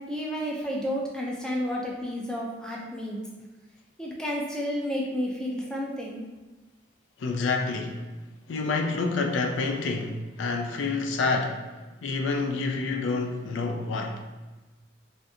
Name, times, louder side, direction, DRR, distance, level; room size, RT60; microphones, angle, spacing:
voice 1, 0.0-3.2 4.0-6.2, equal, 5° left, -3 dB, 0.4 m, -31 dB
voice 2, 7.2-8.1 8.5-11.7 12.0-14.3, left 3 dB, 70° left, 3 dB, 0.4 m, -28 dB
3.4 x 2.6 x 2.6 m, 1.2 s
head